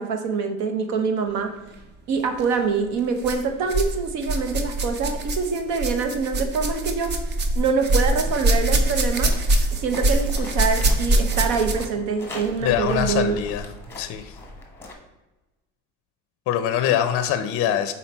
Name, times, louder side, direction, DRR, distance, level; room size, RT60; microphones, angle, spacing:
voice 1, 0.0-1.5 2.1-7.1 7.5-9.4 9.7-13.4, right 5 dB, 60° right, 7 dB, 1.0 m, -25 dB
sound 1, 2.3-2.4 3.2-3.9 4.2-12.0 12.9-13.0 13.8-13.9, right 1 dB, 30° right, 0.6 m, -23 dB
sound 2, 9.1-14.9, left 2 dB, 5° left, 1.0 m, -40 dB
voice 2, 12.6-13.7 14.0-14.4 16.5-17.9, left 10 dB, 45° left, 9 dB, 0.5 m, -23 dB
5.8 x 4.1 x 4.2 m, 1.1 s
cardioid pair, 140°, 33 cm